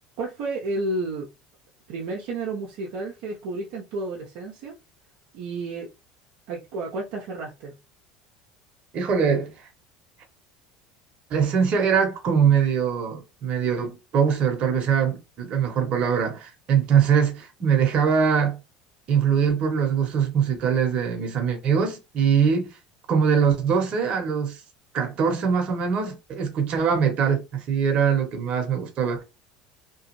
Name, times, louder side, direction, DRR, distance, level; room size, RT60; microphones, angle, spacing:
voice 1, 0.2-1.3 1.9-4.8 5.3-5.9 6.5-7.7, right 2 dB, 70° right, 0.8 m, -31 dB
voice 2, 8.9-9.5 11.3-18.6 19.1-22.7 23.1-24.6 24.9-29.2, right 7 dB, 50° right, 1.2 m, -22 dB
3.0 x 2.3 x 3.1 m
hypercardioid pair, 90°, 3 cm